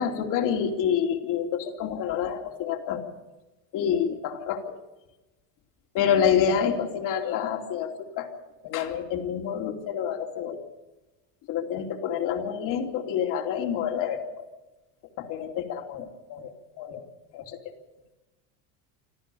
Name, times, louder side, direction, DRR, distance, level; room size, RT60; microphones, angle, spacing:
voice 1, 0.0-3.0 3.7-4.7 5.9-8.3 8.6-10.6 11.5-14.4 15.2-16.5 16.8-17.0 17.3-17.6, left 8 dB, 45° left, 3 dB, 3.0 m, -28 dB
26.0 x 14.5 x 7.0 m, 1.1 s
cardioid pair, 170°, 45 cm